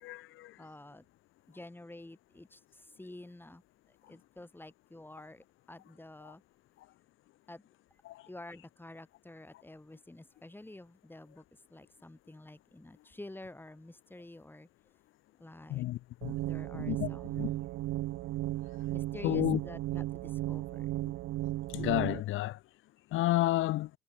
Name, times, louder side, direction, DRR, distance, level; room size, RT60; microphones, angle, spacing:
voice 1, 0.0-0.5 6.3-6.4 8.1-8.2 15.7-16.4 16.7-17.1 17.4-17.5 19.2-19.6 21.7-22.6 23.1-23.9, left 16 dB, 90° left, 2.2 m, -31 dB
voice 2, 0.6-1.0 1.5-3.6 4.1-6.4 7.5-7.6 8.3-11.4 11.7-14.7 15.4-15.8 16.4-17.7 18.9-20.9, left 1 dB, 10° left, 2.9 m, -49 dB
sound 1, 16.2-22.2, right 16 dB, 85° right, 0.9 m, -35 dB
cardioid pair, 90°, 20 cm